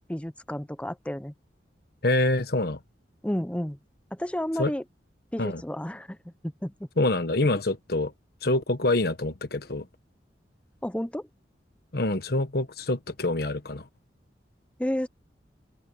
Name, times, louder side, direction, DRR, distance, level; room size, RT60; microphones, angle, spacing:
voice 1, 0.0-1.3 3.2-3.8 4.1-4.8 5.3-6.2 6.4-6.9 10.8-11.3 14.8-15.1, equal, 5° left, 0.6 m, -31 dB
voice 2, 2.0-2.8 4.6-4.7 5.4-5.6 7.0-8.1 8.4-9.9 11.9-13.8, left 2 dB, 55° left, 1.3 m, -26 dB
open air
head